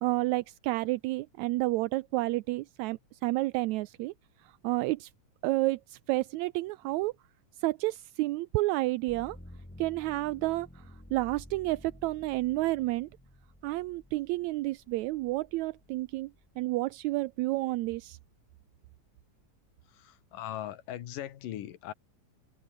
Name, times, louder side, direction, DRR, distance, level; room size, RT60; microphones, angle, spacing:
voice 1, 0.0-4.1 4.6-5.1 5.4-7.1 7.6-9.4 9.8-10.7 11.1-13.1 13.6-16.3 16.6-18.2, right 19 dB, 80° right, 1.7 m, -30 dB
sound 1, 9.1-16.9 17.4-18.2, left 1 dB, 15° left, 0.3 m, -53 dB
voice 2, 19.8-21.9, left 12 dB, 85° left, 3.1 m, -40 dB
omnidirectional pair, 3.7 m